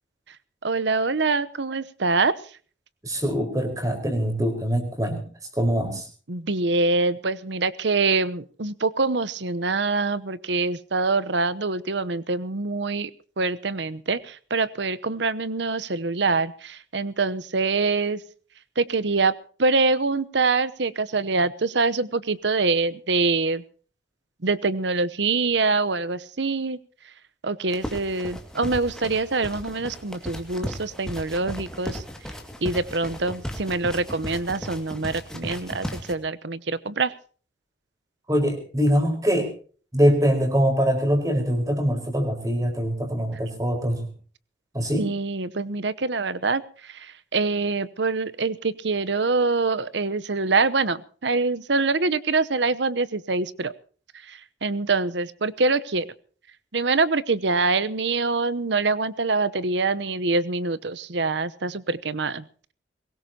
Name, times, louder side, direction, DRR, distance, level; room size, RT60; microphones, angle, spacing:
voice 1, 0.6-2.3 5.8-6.0 6.3-13.1 13.4-18.2 18.8-23.6 24.4-26.8 27.4-32.0 32.6-37.1 45.0-53.7 54.2-56.1 56.7-62.4, right 3 dB, 70° right, 16 dB, 0.9 m, -25 dB
voice 2, 3.0-5.2 5.6-6.1 38.3-39.5 39.9-44.1 44.7-45.1, equal, 20° right, 4 dB, 4.7 m, -23 dB
sound 1, 27.7-36.1, equal, 5° left, 2.2 m, -36 dB
22.5 x 19.5 x 2.9 m, 0.42 s
head